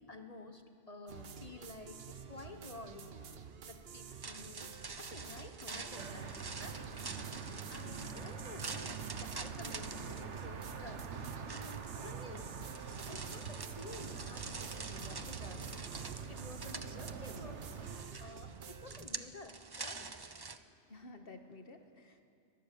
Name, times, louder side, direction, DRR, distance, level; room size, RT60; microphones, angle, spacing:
voice 1, 0.0-3.1 3.7-7.0 7.7-11.1 11.5-12.5 13.1-15.7 16.3-17.7 18.2-20.1, left 2 dB, 35° left, 6 dB, 1.3 m, -51 dB
sound 1, 1.1-19.0, right 6 dB, 60° right, 1.1 m, -50 dB
sound 2, 4.1-20.6, right 4 dB, 25° right, 0.6 m, -47 dB
sound 3, 6.0-18.0, right 6 dB, 80° right, 1.4 m, -45 dB
voice 2, 20.4-22.2, left 2 dB, 55° left, 6 dB, 1.9 m, -54 dB
23.5 x 19.5 x 7.0 m, 2.4 s
omnidirectional pair, 1.2 m